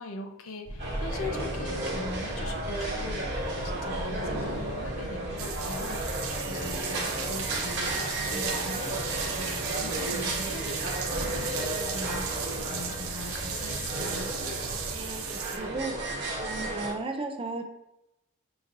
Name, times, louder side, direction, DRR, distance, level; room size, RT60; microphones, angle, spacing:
voice 1, 0.0-14.3, left 3 dB, 75° left, 5 dB, 0.5 m, -41 dB
sound 1, 0.6-15.2, equal, 40° left, 1.0 m, -40 dB
sound 2, 0.8-16.9, right 2 dB, 55° right, 1.0 m, -34 dB
sound 3, 5.4-15.6, right 7 dB, 80° right, 0.6 m, -36 dB
voice 2, 14.9-15.2 15.6-16.1 16.4-17.7, right 3 dB, 25° right, 4 dB, 0.4 m, -35 dB
5.7 x 2.6 x 2.6 m, 0.87 s
head